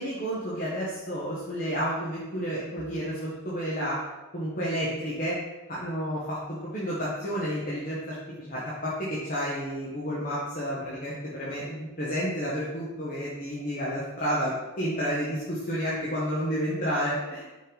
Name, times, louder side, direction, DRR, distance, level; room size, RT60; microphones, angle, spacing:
voice 1, 0.0-4.0 4.3-5.4 5.7-17.4, equal, 40° left, -7 dB, 1.0 m, -31 dB
5.3 x 5.1 x 3.8 m, 1.1 s
head